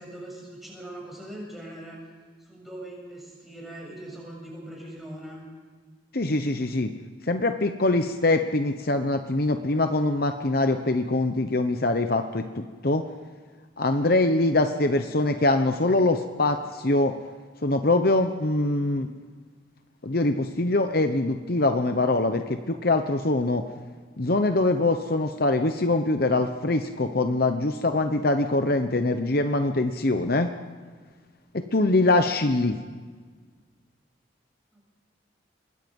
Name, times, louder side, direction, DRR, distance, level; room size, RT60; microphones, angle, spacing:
voice 1, 0.0-2.0 2.4-5.4 14.5-14.6 34.7-35.0, right 1 dB, ahead, -3 dB, 7.7 m, -41 dB
voice 2, 6.1-6.9 7.3-13.0 13.8-17.1 17.6-19.1 20.0-23.6 24.2-30.5 31.5-32.7, left 2 dB, 50° left, 7 dB, 1.0 m, -23 dB
26.0 x 21.0 x 5.4 m, 1.5 s
head